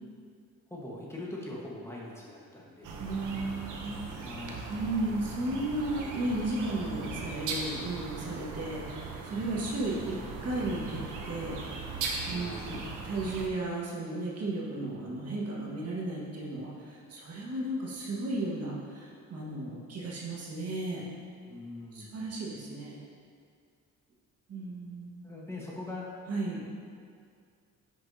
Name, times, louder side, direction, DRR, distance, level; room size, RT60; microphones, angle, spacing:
voice 1, 0.7-3.0 4.2-4.7 12.2-12.8 21.5-22.2 25.2-26.2, left 2 dB, 10° left, -5 dB, 1.5 m, -42 dB
sound 1, 2.8-13.5, right 4 dB, 85° right, 1.0 m, -39 dB
voice 2, 3.0-4.3 4.7-10.2 10.4-11.6 12.3-21.1 21.9-23.0 24.5-25.2 26.3-26.6, right 2 dB, 55° right, -4 dB, 1.8 m, -34 dB
9.7 x 6.4 x 2.9 m, 2.3 s
cardioid pair, 90°, 30 cm